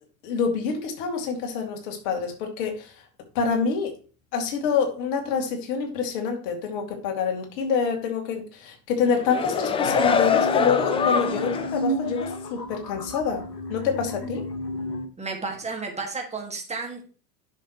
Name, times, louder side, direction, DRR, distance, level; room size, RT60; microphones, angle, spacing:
voice 1, 0.2-2.9 3.3-4.0 4.3-13.4 13.7-14.4, left 6 dB, 50° left, 2.5 m, -26 dB
sound 1, 9.0-11.8 12.2-12.3, left 6 dB, 10° left, 0.5 m, -24 dB
sound 2, 9.8-15.1, left 1 dB, 85° left, 1.6 m, -31 dB
voice 2, 15.2-17.0, right 4 dB, 15° right, 2.0 m, -32 dB
10.0 x 6.6 x 3.1 m
figure-of-eight pair, 85°, 48 cm